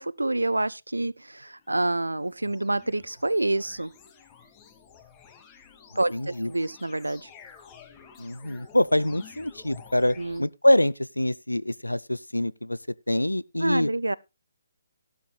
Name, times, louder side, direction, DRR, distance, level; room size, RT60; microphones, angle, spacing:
voice 1, 0.0-3.9 6.0-7.3 10.2-10.4 13.6-14.2, right 2 dB, 80° right, 0.5 m, -27 dB
sound 1, 1.4-10.4, left 7 dB, 20° left, 1.9 m, -51 dB
voice 2, 6.1-6.5 8.2-12.8 13.1-13.9, left 1 dB, 90° left, 0.5 m, -25 dB
16.0 x 12.5 x 2.2 m
figure-of-eight pair, 140°, 0 cm